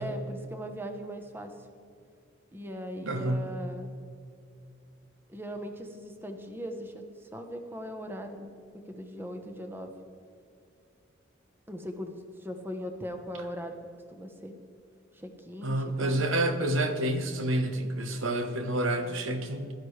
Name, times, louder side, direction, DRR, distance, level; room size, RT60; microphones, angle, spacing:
voice 1, 0.0-1.5 2.5-3.9 5.3-8.5 8.8-9.9 11.7-13.7 14.1-14.5 15.1-16.2, equal, 10° right, 5 dB, 0.9 m, -39 dB
voice 2, 3.0-3.5 15.6-19.7, right 1 dB, 75° right, 7 dB, 1.1 m, -29 dB
15.5 x 12.0 x 3.3 m, 2.5 s
head